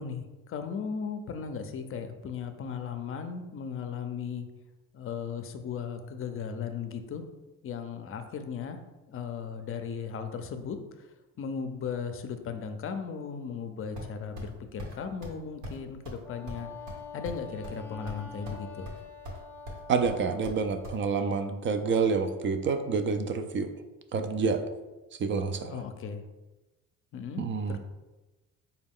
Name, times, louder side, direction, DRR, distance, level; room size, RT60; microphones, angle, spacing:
voice 1, 0.0-4.5 4.9-7.2 7.6-8.8 9.1-11.1 11.4-16.7 17.1-18.9 25.7-26.2 27.1-27.8, left 6 dB, 45° left, 8 dB, 0.5 m, -37 dB
sound 1, 14.0-14.5 14.8-14.9 15.2-15.4 15.6-15.8 16.0-16.2 16.5-17.8 18.1-18.6 18.8-19.4 19.7-21.0, equal, 70° right, 1.1 m, -40 dB
Wind instrument woodwind instrument, 16.2-20.5, left 4 dB, 5° left, 0.7 m, -45 dB
voice 2, 19.9-23.7 24.1-24.6 25.2-25.8 27.4-27.8, right 5 dB, 40° right, 8 dB, 0.4 m, -28 dB
4.1 x 2.3 x 3.6 m, 1.1 s
supercardioid pair, 80°, 32 cm